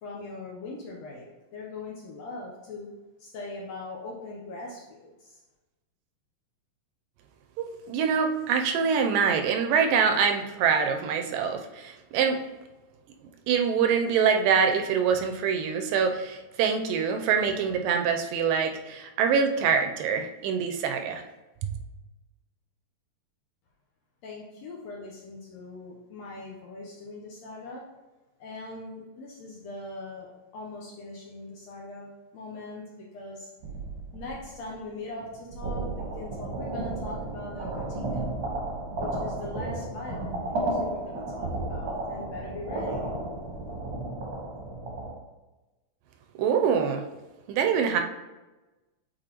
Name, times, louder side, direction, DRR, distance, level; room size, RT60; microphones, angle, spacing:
voice 1, 0.0-2.9 3.2-5.4 24.2-27.8 28.4-33.5 34.1-38.3 39.0-43.1, left 2 dB, 75° left, -3 dB, 1.6 m, -41 dB
voice 2, 7.6-12.4 13.5-21.2 21.6-21.7 46.4-47.0 47.5-48.0, right 6 dB, 85° right, 5 dB, 2.2 m, -25 dB
sound 1, 33.6-34.8 35.2-45.1, right 2 dB, 55° right, 1.3 m, -33 dB
7.6 x 4.5 x 2.9 m, 1.1 s
omnidirectional pair, 4.0 m